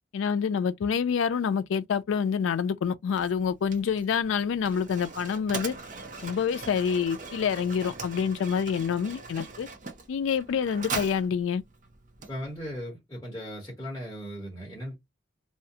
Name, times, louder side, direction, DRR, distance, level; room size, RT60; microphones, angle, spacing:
voice 1, 0.1-5.7 6.2-9.7 10.1-11.6, left 7 dB, 75° left, 0.3 m, -27 dB
Mechanisms, 3.1-12.8, right 4 dB, 40° right, 0.6 m, -41 dB
voice 2, 12.3-15.0, equal, 15° left, 1.0 m, -37 dB
2.4 x 2.2 x 2.7 m
head